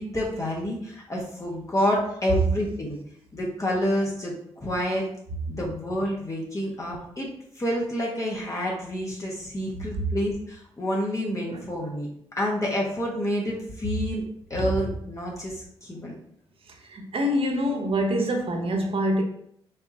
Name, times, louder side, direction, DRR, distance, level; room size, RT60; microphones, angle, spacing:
voice 1, 0.0-3.0 3.3-5.1 5.5-7.3 7.5-12.1 12.4-14.2 14.5-16.1, equal, 30° left, 1.4 m, -28 dB
voice 2, 16.7-19.2, equal, 55° right, 1.0 m, -26 dB
5.4 x 2.8 x 2.9 m
supercardioid pair, 45°, 12 cm